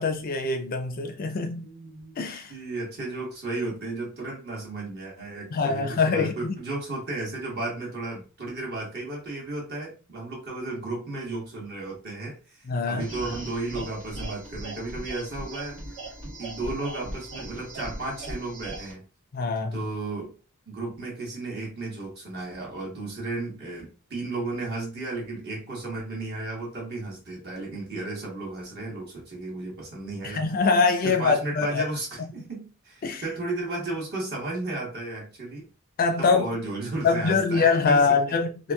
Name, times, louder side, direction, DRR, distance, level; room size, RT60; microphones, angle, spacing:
voice 1, 0.0-1.7 2.2-2.5 5.5-6.5 12.7-13.1 19.3-19.8 30.3-31.8 33.0-33.2 36.0-36.5 37.0-38.7, left 4 dB, 45° left, 0.4 m, -24 dB
voice 2, 1.6-2.2 2.5-12.6 12.9-15.8 16.4-19.0 19.7-20.3 20.7-30.5 31.0-35.7 36.2-38.2, right 2 dB, 50° right, 1.1 m, -34 dB
sound 1, 13.0-18.9, right 1 dB, 75° right, 1.5 m, -38 dB
2.9 x 2.5 x 2.2 m
head